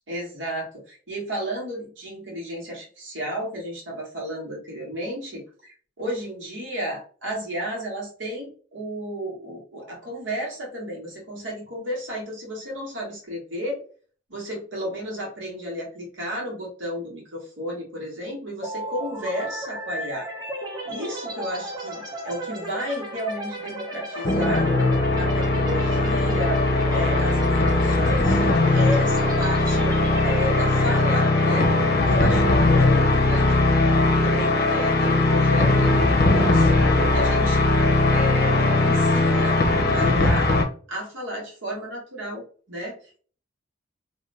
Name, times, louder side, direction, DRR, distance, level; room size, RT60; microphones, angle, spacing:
voice 1, 0.1-13.8 14.3-20.3 20.8-24.7 25.2-28.4 28.7-29.9 30.2-31.7 32.0-33.9 34.2-37.7 38.1-39.6 39.9-40.5 40.9-43.2, equal, 70° right, -2 dB, 1.4 m, -33 dB
sound 1, 18.6-36.4, right 1 dB, 25° right, 0.8 m, -35 dB
sound 2, 24.2-40.6, left 2 dB, 55° left, 0.7 m, -19 dB
2.7 x 2.6 x 3.3 m, 0.43 s
head